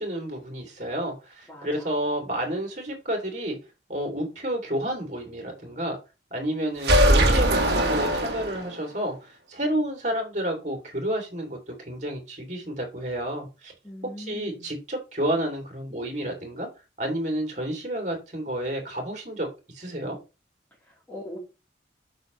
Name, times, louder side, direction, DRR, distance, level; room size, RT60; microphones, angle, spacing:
voice 1, 0.0-3.6 3.9-6.0 6.3-13.7 14.2-16.7 17.0-19.5 19.7-20.2, right 1 dB, 40° right, 2 dB, 2.8 m, -30 dB
voice 2, 1.5-1.9 13.8-14.7 20.8-21.4, left 1 dB, 10° left, -5 dB, 3.2 m, -41 dB
sound 1, 6.8-8.9, right 1 dB, 60° right, 1.6 m, -21 dB
8.1 x 6.2 x 3.1 m, 0.28 s
head